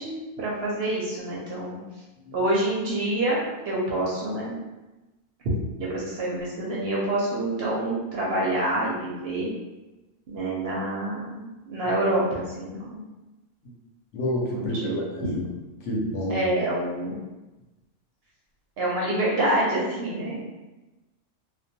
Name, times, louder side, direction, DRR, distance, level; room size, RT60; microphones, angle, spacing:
voice 1, 0.0-1.8 2.3-4.6 5.8-9.5 10.3-13.1 14.5-15.3 16.3-17.2 18.8-20.4, right 1 dB, 65° right, -5 dB, 0.7 m, -27 dB
voice 2, 14.1-15.4 15.9-16.4, equal, 70° left, -3 dB, 0.9 m, -28 dB
2.2 x 2.2 x 2.6 m, 1.1 s
omnidirectional pair, 1.3 m